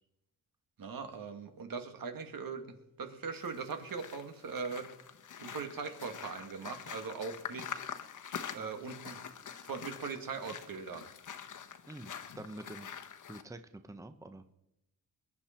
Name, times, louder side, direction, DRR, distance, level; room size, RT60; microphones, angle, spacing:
voice 1, 0.8-4.9 5.4-7.8 8.5-9.2 9.6-11.1, right 5 dB, 65° right, 6 dB, 2.2 m, -40 dB
sound 1, 3.3-13.4, left 8 dB, 55° left, 1.2 m, -45 dB
voice 2, 11.9-12.9 13.3-14.4, right 2 dB, 10° right, 9 dB, 1.0 m, -47 dB
21.5 x 10.0 x 4.5 m, 0.84 s
cardioid pair, 85°, 37 cm